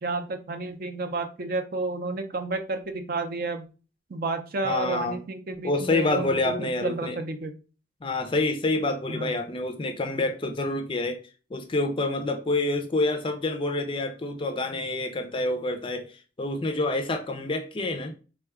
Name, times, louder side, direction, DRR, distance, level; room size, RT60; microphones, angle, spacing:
voice 1, 0.0-3.7 4.1-7.5 9.1-9.3, right 3 dB, 50° right, 0.5 m, -31 dB
voice 2, 4.6-5.2 5.6-7.2 8.0-11.2 11.5-18.1, left 2 dB, 25° left, 0.4 m, -27 dB
3.6 x 2.2 x 3.4 m
head